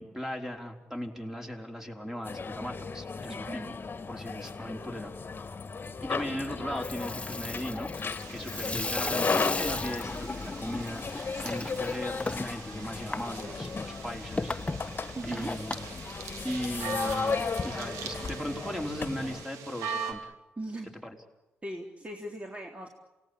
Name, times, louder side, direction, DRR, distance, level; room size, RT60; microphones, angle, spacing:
voice 1, 0.0-3.6 4.1-5.1 6.0-14.5 14.8-14.9 15.2-15.8 16.4-20.3 21.0-21.2, equal, 10° right, 3 dB, 5.1 m, -38 dB
sound 1, 2.2-19.4, left 4 dB, 40° left, 1.9 m, -35 dB
voice 2, 3.3-3.7 8.5-8.9 15.2-15.5 20.6-20.9 21.6-22.9, right 1 dB, 25° right, 1 dB, 3.9 m, -39 dB
Water tap faucet / Sink (filling or washing), 6.6-16.8, left 2 dB, 25° left, 1.3 m, -37 dB
sound 2, 8.2-20.1, right 6 dB, 80° right, 2.9 m, -42 dB
28.0 x 18.5 x 8.9 m, 1.0 s
hypercardioid pair, 40°, 5 cm